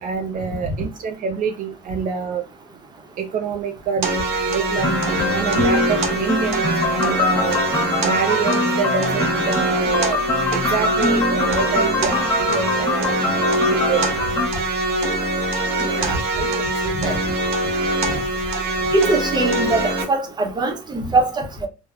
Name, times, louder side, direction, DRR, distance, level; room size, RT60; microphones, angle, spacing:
voice 1, 0.0-2.4 3.2-4.1 4.5-5.0 5.3-7.6 8.0-10.2 10.5-13.1 13.7-14.1, right 6 dB, 50° right, 0.4 m, -26 dB
sound 1, 4.0-20.0, right 2 dB, 85° right, 0.9 m, -23 dB
sound 2, 4.8-14.5, left 2 dB, 20° left, 0.6 m, -23 dB
voice 2, 15.8-16.5 16.8-17.2 18.9-21.7, right 2 dB, 25° right, 0.7 m, -22 dB
3.3 x 2.0 x 2.3 m
cardioid pair, 110°, 17 cm